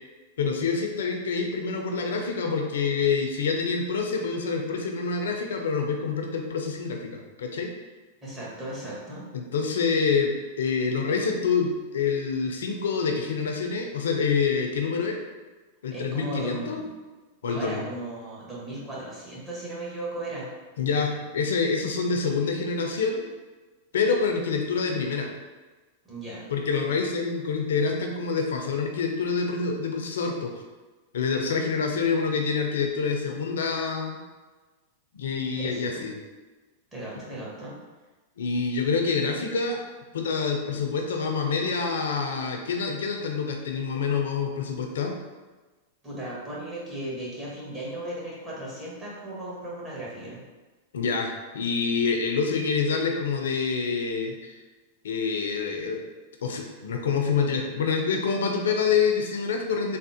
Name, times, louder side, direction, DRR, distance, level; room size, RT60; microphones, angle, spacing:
voice 1, 0.4-7.7 9.3-15.2 15.8-16.8 17.4-17.8 20.8-23.3 23.9-25.3 26.5-30.5 31.1-34.2 35.1-36.1 38.4-39.8 40.1-45.1 50.9-54.5 55.0-56.0 56.4-60.0, left 5 dB, 80° left, 3 dB, 0.4 m, -26 dB
voice 2, 8.2-9.3 15.9-16.9 17.4-20.5 26.0-26.4 35.4-36.1 36.9-37.7 46.0-50.4, right 1 dB, 20° right, -7 dB, 1.3 m, -36 dB
3.5 x 2.0 x 2.7 m, 1.3 s
hypercardioid pair, 110°, 0 cm